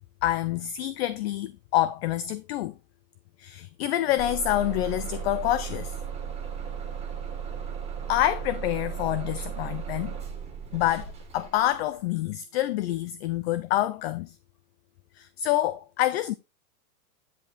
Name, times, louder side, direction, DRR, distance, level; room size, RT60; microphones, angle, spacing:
voice 1, 0.2-2.7 3.4-6.0 8.1-10.2 10.7-14.3 15.2-16.3, left 13 dB, 45° left, 0.5 m, -27 dB
Bus / Engine starting, 4.2-11.9, right 7 dB, 15° right, 2.0 m, -36 dB
10.5 x 5.1 x 4.0 m
hypercardioid pair, 140°, 46 cm